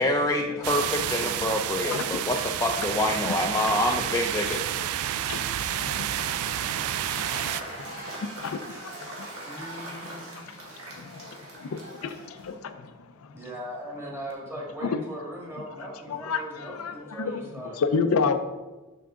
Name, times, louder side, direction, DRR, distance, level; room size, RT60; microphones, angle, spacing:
voice 1, 0.0-4.6, left 1 dB, 15° left, 2 dB, 0.4 m, -26 dB
sound 1, 0.6-7.6, right 11 dB, 90° right, 0.3 m, -30 dB
voice 2, 0.9-1.5 1.8-2.5 2.8-2.9 3.2-3.4 3.7-3.8 5.1-9.3 9.6-12.9 14.8-15.0 16.1-18.4, left 5 dB, 70° left, 8 dB, 0.4 m, -32 dB
Cheering / Applause / Crowd, 5.6-12.7, right 1 dB, 75° right, 1.8 m, -41 dB
voice 3, 7.8-8.1 8.7-10.5 10.9-11.2 13.3-18.2, equal, 10° right, -4 dB, 1.7 m, -40 dB
6.0 x 5.8 x 3.7 m, 1.2 s
head